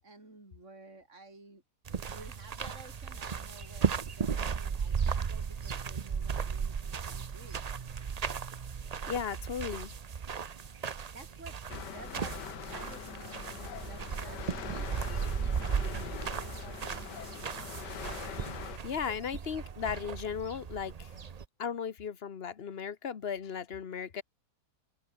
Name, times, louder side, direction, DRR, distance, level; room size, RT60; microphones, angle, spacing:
voice 1, 0.0-1.6 2.1-7.6 11.1-13.6 13.8-14.9 15.4-16.0 16.3-17.9, right 2 dB, 45° right, 5.4 m, -53 dB
sound 1, 1.9-21.5, right 6 dB, 85° right, 0.3 m, -36 dB
voice 2, 9.1-9.9 18.8-21.1 21.6-24.2, left 7 dB, 40° left, 1.2 m, -36 dB
sound 2, 11.7-18.8, left 9 dB, 80° left, 1.8 m, -43 dB
open air
omnidirectional pair, 1.8 m